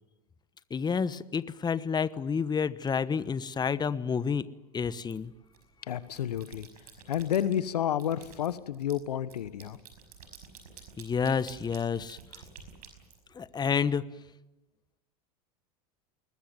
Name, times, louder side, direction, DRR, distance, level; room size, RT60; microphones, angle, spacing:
voice 1, 0.7-4.5 4.7-5.3 11.0-12.2 13.3-14.0, left 6 dB, 20° left, 16 dB, 1.1 m, -29 dB
sound 1, 5.1-5.6 6.0-7.6 8.0-13.8, right 7 dB, 75° right, 5.3 m, -51 dB
voice 2, 5.9-6.7 7.1-9.8, left 10 dB, 80° left, 16 dB, 1.2 m, -30 dB
21.5 x 20.5 x 9.3 m, 1.0 s
hypercardioid pair, 85°, 20 cm